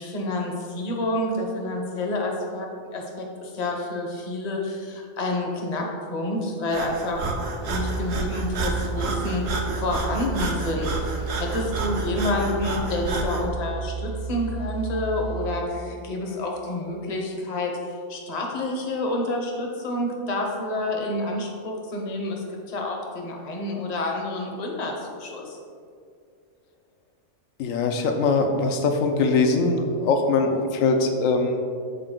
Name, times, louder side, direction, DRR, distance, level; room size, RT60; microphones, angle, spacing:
voice 1, 0.0-7.3 7.6-17.7 18.1-25.6, left 2 dB, 35° left, 0 dB, 0.8 m, -28 dB
Breathing, 6.7-13.5, right 3 dB, 60° right, 0.9 m, -31 dB
sound 1, 7.6-15.6, right 5 dB, 85° right, 1.4 m, -32 dB
voice 2, 27.6-31.6, left 3 dB, 75° left, 4 dB, 1.0 m, -22 dB
6.8 x 4.2 x 3.7 m, 2.2 s
omnidirectional pair, 1.4 m